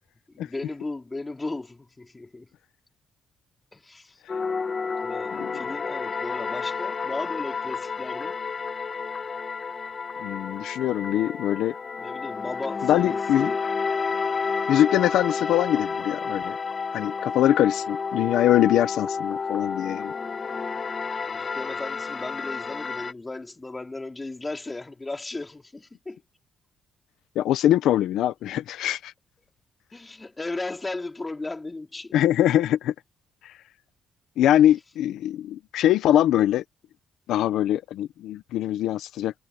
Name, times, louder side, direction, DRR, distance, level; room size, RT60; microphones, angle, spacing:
voice 1, 0.3-2.5 3.7-4.2 5.0-8.4 12.0-13.6 21.3-26.2 29.9-32.2, left 2 dB, 20° left, 3.5 m, -36 dB
sound 1, 4.3-23.1, left 5 dB, 35° left, 1.6 m, -30 dB
voice 2, 10.2-11.7 12.8-13.5 14.7-16.6 16.9-20.1 27.4-29.1 32.1-32.9 33.4-33.5 34.4-36.6 37.3-39.3, left 12 dB, 85° left, 1.0 m, -23 dB
cardioid pair, 90°, 0 cm